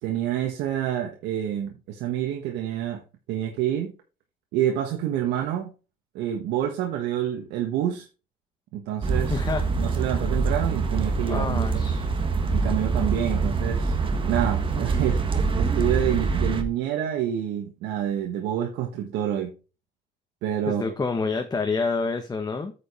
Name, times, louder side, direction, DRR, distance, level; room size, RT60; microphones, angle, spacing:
voice 1, 0.0-3.0 3.3-3.9 4.5-5.7 6.1-8.1 8.7-9.4 9.7-11.8 12.5-14.0 14.3-19.5 20.4-20.9, right 10 dB, 90° right, 1.4 m, -28 dB
sound 1, 9.0-16.6, right 4 dB, 30° right, 1.5 m, -25 dB
voice 2, 9.3-9.6 11.3-12.1 20.7-22.7, left 4 dB, 20° left, 1.2 m, -27 dB
8.8 x 5.2 x 4.3 m
cardioid pair, 110°, 17 cm